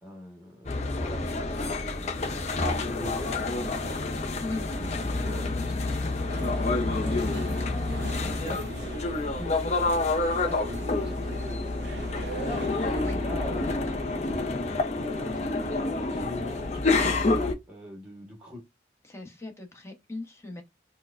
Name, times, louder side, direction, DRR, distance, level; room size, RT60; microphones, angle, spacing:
voice 1, 0.0-4.0 4.4-6.5 7.0-7.7 8.2-12.8 13.2-15.7 16.1-17.3 17.7-18.6, left 1 dB, 5° right, 1.2 m, -43 dB
sound 1, 0.7-17.5, left 2 dB, 40° left, 0.6 m, -28 dB
sound 2, 6.3-13.2, right 5 dB, 70° right, 0.4 m, -43 dB
voice 2, 19.0-20.6, left 2 dB, 15° left, 0.9 m, -37 dB
4.5 x 2.2 x 2.4 m
head